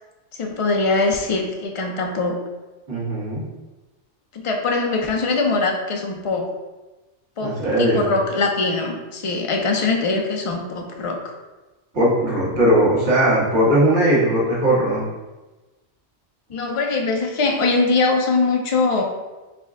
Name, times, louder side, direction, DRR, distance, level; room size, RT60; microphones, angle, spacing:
voice 1, 0.4-2.4 4.3-6.5 7.4-11.3 16.5-19.0, left 3 dB, 55° left, 2 dB, 0.3 m, -22 dB
voice 2, 2.9-3.4 7.4-8.1 11.9-15.0, right 1 dB, 75° right, -7 dB, 1.6 m, -18 dB
5.0 x 2.1 x 3.5 m, 1.1 s
omnidirectional pair, 1.2 m